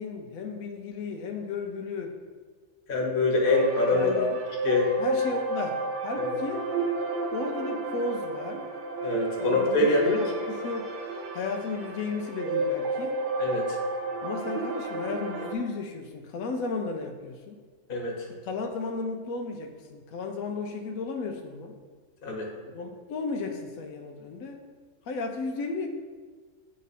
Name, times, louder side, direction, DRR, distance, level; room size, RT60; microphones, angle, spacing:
voice 1, 0.0-2.1 3.9-4.4 5.0-6.7 7.3-8.7 9.5-10.9 11.3-13.2 14.2-17.6 18.4-21.7 22.6-24.6 25.1-25.9, left 4 dB, 90° left, 3 dB, 1.0 m, -34 dB
voice 2, 2.9-4.3 4.6-4.9 6.2-6.3 9.0-10.2 13.4-13.8 17.9-18.3 22.2-22.5, left 2 dB, 45° left, -1 dB, 1.1 m, -24 dB
sound 1, 3.4-15.5, right 2 dB, 50° right, 0.7 m, -32 dB
8.5 x 3.1 x 4.1 m, 1.5 s
omnidirectional pair, 1.4 m